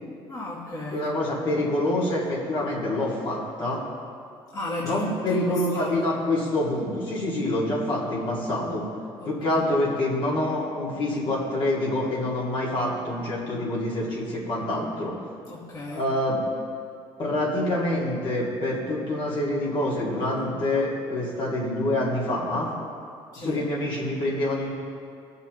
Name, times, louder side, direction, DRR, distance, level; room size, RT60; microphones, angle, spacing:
voice 1, 0.3-1.1 4.5-6.1 9.2-9.6 15.5-16.1 23.3-23.7, left 2 dB, 35° left, -8 dB, 2.5 m, -34 dB
voice 2, 0.9-3.8 4.8-8.9 9.2-15.2 15.9-16.4 17.2-22.7 23.4-24.7, left 1 dB, 50° left, -6 dB, 2.7 m, -26 dB
19.0 x 6.7 x 3.3 m, 2.4 s
cardioid pair, 105°, 11 cm